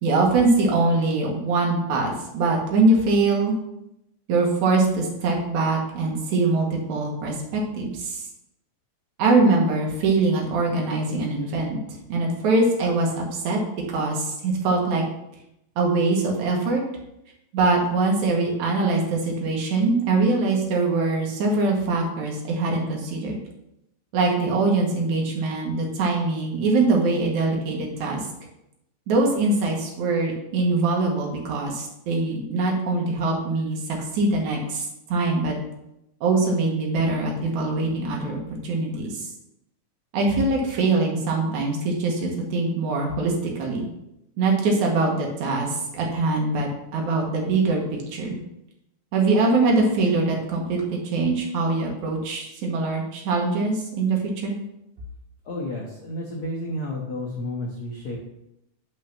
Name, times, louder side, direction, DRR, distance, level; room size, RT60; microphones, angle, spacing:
voice 1, 0.0-3.6 4.3-8.2 9.2-11.8 12.1-13.6 13.9-15.0 15.8-16.8 17.5-23.4 24.1-28.2 29.1-35.5 36.2-39.3 40.1-43.9 44.4-48.4 49.1-54.6, right 3 dB, 75° right, 0 dB, 2.8 m, -23 dB
voice 2, 55.4-58.2, left 1 dB, 60° left, -2 dB, 1.0 m, -31 dB
5.8 x 5.6 x 5.9 m, 0.84 s
omnidirectional pair, 3.4 m